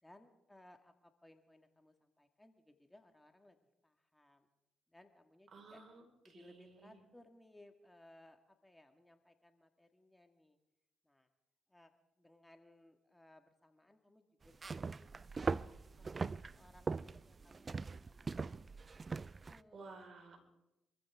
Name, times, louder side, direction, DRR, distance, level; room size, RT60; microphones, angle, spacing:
voice 1, 0.0-3.6 3.8-4.5 4.9-5.8 6.2-10.6 11.0-11.3 11.7-15.5 16.0-18.4 19.2-19.9, left 1 dB, 10° left, 6 dB, 1.8 m, -64 dB
voice 2, 5.5-7.0 19.7-20.4, right 3 dB, 55° right, 2 dB, 4.8 m, -55 dB
sound 1, 14.5-19.6, right 4 dB, 40° right, 0.5 m, -41 dB
26.5 x 14.5 x 3.6 m, 0.91 s
hypercardioid pair, 45°, 0 cm